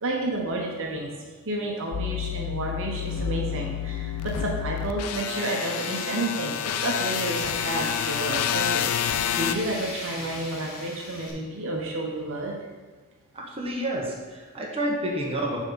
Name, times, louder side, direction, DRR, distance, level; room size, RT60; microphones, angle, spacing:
voice 1, 0.0-1.1 1.4-12.6, right 2 dB, 65° right, 0 dB, 1.0 m, -31 dB
sound 1, 1.9-9.6, left 10 dB, 90° left, 0.4 m, -29 dB
Tools, 5.4-11.3, left 2 dB, 65° left, 1.4 m, -37 dB
voice 2, 13.3-15.6, right 1 dB, 25° right, -3 dB, 1.2 m, -29 dB
7.1 x 3.7 x 5.6 m, 1.4 s
head